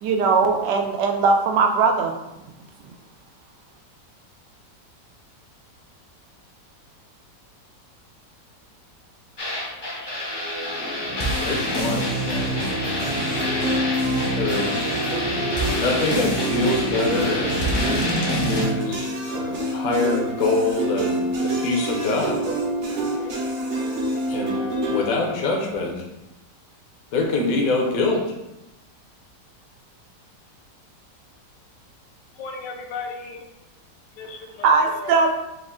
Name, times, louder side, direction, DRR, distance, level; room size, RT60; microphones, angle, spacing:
voice 1, 0.0-2.2 34.6-35.3, right 4 dB, 90° right, 4 dB, 1.2 m, -19 dB
sound 1, 9.4-18.6, equal, 30° left, 0.4 m, -25 dB
voice 2, 11.4-12.7 14.4-14.9 15.8-18.0 18.4-22.4 24.3-24.6 24.9-26.0 27.1-28.3, left 3 dB, 65° left, 0 dB, 1.0 m, -25 dB
sound 2, 12.5-25.4, right 1 dB, 70° right, 1.3 m, -41 dB
sound 3, 12.6-25.1, right 1 dB, 50° right, 1.0 m, -28 dB
voice 3, 32.3-33.5 34.1-35.2, left 4 dB, 85° left, 2 dB, 1.4 m, -35 dB
5.2 x 2.5 x 3.6 m, 0.94 s
omnidirectional pair, 1.9 m